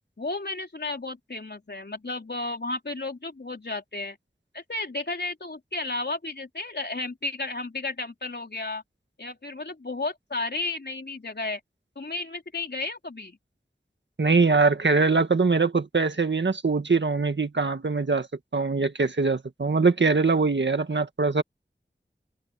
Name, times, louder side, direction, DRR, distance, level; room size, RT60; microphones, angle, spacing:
voice 1, 0.2-4.2 4.5-8.8 9.2-11.6 12.0-13.4, left 2 dB, 65° left, 3.8 m, -33 dB
voice 2, 14.2-18.3 18.5-21.4, right 4 dB, 85° right, 1.7 m, -22 dB
open air
wide cardioid pair, 50°, 18 cm